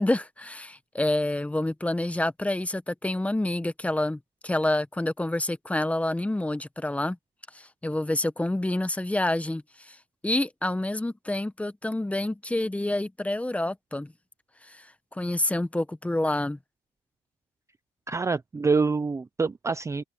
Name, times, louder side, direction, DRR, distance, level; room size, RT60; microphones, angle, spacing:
voice 1, 0.0-7.2 7.5-10.0 10.2-14.1 14.6-16.6, left 1 dB, 10° left, 1.1 m, -28 dB
voice 2, 18.1-20.0, right 4 dB, 15° right, 0.6 m, -26 dB
cardioid pair, 110°, 17 cm